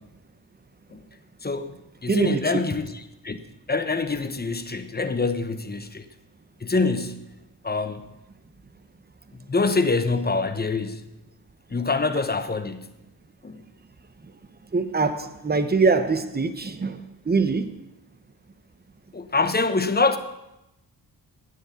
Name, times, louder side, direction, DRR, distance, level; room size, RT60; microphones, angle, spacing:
voice 1, 1.4-2.9 3.2-3.4 3.7-6.1 6.6-7.3 7.6-8.0 9.3-11.0 11.7-12.9 13.4-13.6 19.1-20.2, left 3 dB, 25° left, 1.0 m, -25 dB
voice 2, 2.1-2.6 14.7-17.7, right 4 dB, 25° right, 1.0 m, -23 dB
9.7 x 9.5 x 8.3 m
wide cardioid pair, 100°, 40 cm